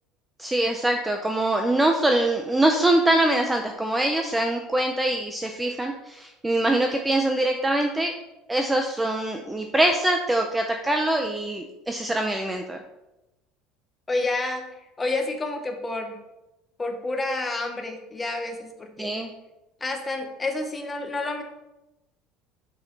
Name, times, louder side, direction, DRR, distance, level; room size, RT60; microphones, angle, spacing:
voice 1, 0.4-8.1 8.5-12.8 19.0-19.3, right 1 dB, 10° right, 4 dB, 0.5 m, -23 dB
voice 2, 14.1-14.6 15.0-16.2 16.8-19.1 19.8-21.4, left 2 dB, 15° left, 4 dB, 1.0 m, -29 dB
6.8 x 6.3 x 4.0 m, 0.95 s
cardioid pair, 150°, 0 cm